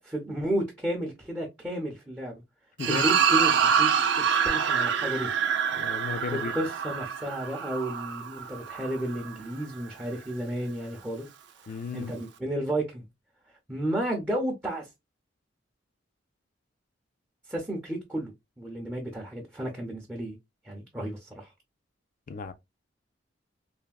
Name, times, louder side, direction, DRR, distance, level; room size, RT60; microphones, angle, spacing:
voice 1, 0.0-2.4 2.8-5.3 6.3-11.3 11.9-13.1 13.7-14.9 17.5-18.3 18.6-20.4 20.6-21.5, right 1 dB, 10° right, 0.6 m, -32 dB
sound 1, 2.8-9.3, right 7 dB, 65° right, 0.4 m, -26 dB
voice 2, 5.8-6.5 11.7-12.1 22.3-22.5, left 5 dB, 45° left, 0.4 m, -34 dB
3.3 x 2.1 x 2.3 m
head